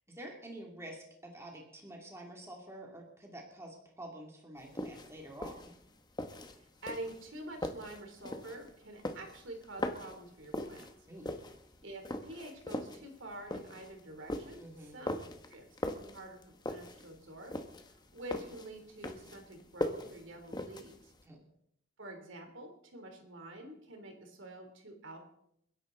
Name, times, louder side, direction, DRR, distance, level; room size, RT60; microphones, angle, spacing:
voice 1, 0.1-5.7 11.1-11.4 14.6-15.0 21.2-21.4, right 1 dB, 15° right, -1 dB, 2.8 m, -48 dB
sound 1, 4.6-21.2, left 1 dB, 20° left, 1.2 m, -41 dB
voice 2, 6.4-10.9 11.8-15.1 15.5-16.4 16.7-17.5 17.9-21.1 22.0-25.2, right 1 dB, 60° right, 4 dB, 3.5 m, -47 dB
29.5 x 11.0 x 4.0 m, 0.74 s
head